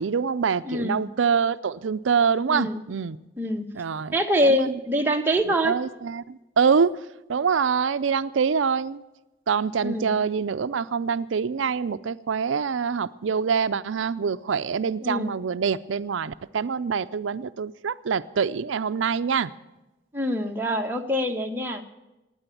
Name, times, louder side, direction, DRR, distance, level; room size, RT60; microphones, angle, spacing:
voice 1, 0.0-3.2 3.7-4.1 4.4-4.7 5.5-6.9 7.3-9.0 9.5-19.5, right 6 dB, 85° right, 13 dB, 0.5 m, -25 dB
voice 2, 0.6-1.0 2.5-2.8 3.4-3.6 4.1-5.8 9.8-10.2 15.0-15.3 20.1-21.8, equal, 10° right, 2 dB, 1.1 m, -25 dB
17.0 x 9.9 x 8.3 m, 1.0 s
head